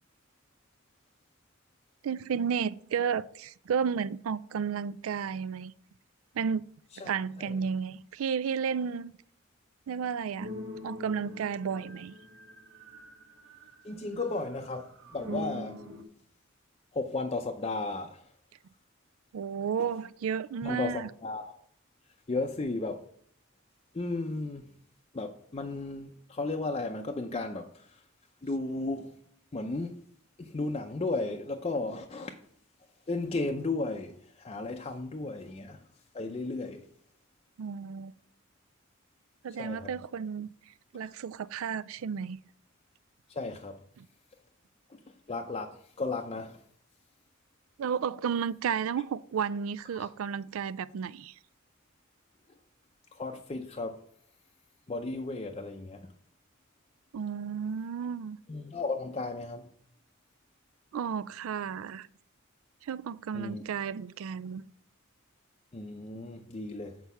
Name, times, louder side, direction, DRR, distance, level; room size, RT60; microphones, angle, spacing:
voice 1, 2.0-5.7 6.3-6.6 7.0-9.1 9.9-10.5 10.8-12.1 19.3-21.1 37.6-38.1 39.4-40.5 40.9-42.4 44.0-44.1 47.8-51.3 57.1-58.4 60.9-62.1 62.8-64.6, right 7 dB, 90° right, 0.4 m, -32 dB
sound 1, 10.4-13.9 14.3-16.0, equal, 70° right, 1.3 m, -42 dB
voice 2, 13.8-15.8 16.9-18.3 20.6-21.6 22.3-23.0 23.9-24.7 25.1-28.0 28.4-29.2 29.5-30.0 30.4-32.4 33.1-35.9 36.1-36.9 39.6-39.9 43.3-43.8 44.9-46.6 49.9-50.1 53.1-54.0 54.9-56.1 58.5-59.7 63.3-63.6 65.7-67.0, left 3 dB, 30° left, 0.5 m, -35 dB
8.2 x 4.6 x 5.5 m
head